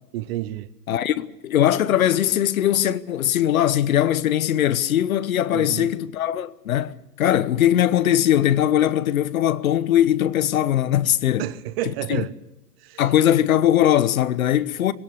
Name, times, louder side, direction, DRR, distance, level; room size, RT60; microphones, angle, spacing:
voice 1, 0.1-0.7 5.5-5.9 11.4-12.3 12.8-13.0, right 14 dB, 35° right, 1.0 m, -30 dB
voice 2, 0.9-11.4 13.0-14.9, left 11 dB, 55° left, 1.2 m, -20 dB
23.5 x 17.5 x 6.8 m
figure-of-eight pair, 110°, 50 cm